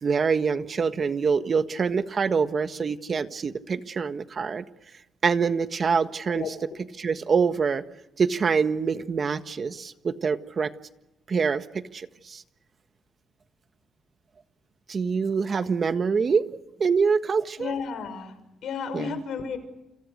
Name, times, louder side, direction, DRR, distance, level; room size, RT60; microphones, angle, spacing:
voice 1, 0.0-4.6 5.2-6.5 7.0-7.8 8.2-10.7 11.3-12.4 14.9-16.5 16.8-17.7 18.9-19.2, right 5 dB, 45° right, 9 dB, 1.5 m, -25 dB
voice 2, 17.6-18.3 18.6-19.6, left 6 dB, 75° left, 10 dB, 6.2 m, -32 dB
29.5 x 28.0 x 6.7 m, 0.94 s
cardioid pair, 110°, 0 cm